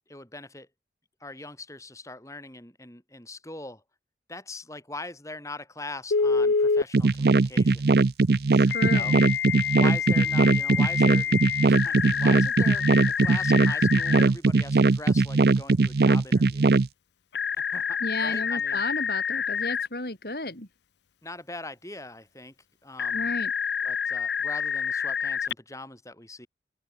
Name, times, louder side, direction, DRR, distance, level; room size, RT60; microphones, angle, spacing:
voice 1, 0.1-0.7 1.2-3.8 4.3-7.9 8.8-9.2 9.8-11.4 11.6-16.6 17.7-18.8 21.2-22.5 22.8-23.3 23.8-26.5, left 2 dB, 15° left, 6.1 m, -41 dB
Telephone, 6.1-6.9 8.7-14.2 17.3-19.9 23.0-25.5, left 6 dB, 80° left, 0.7 m, -27 dB
sound 1, 6.9-16.9, right 3 dB, 60° right, 0.5 m, -20 dB
voice 2, 8.5-9.2 18.0-20.7 23.1-23.5, left 2 dB, 55° left, 4.0 m, -33 dB
head